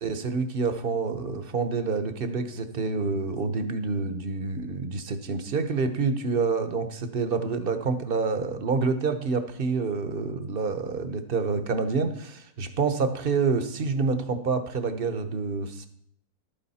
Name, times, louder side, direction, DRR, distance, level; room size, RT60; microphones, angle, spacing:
voice 1, 0.0-15.9, right 4 dB, 45° right, 9 dB, 0.9 m, -27 dB
12.0 x 8.8 x 4.2 m, 0.65 s
omnidirectional pair, 1.7 m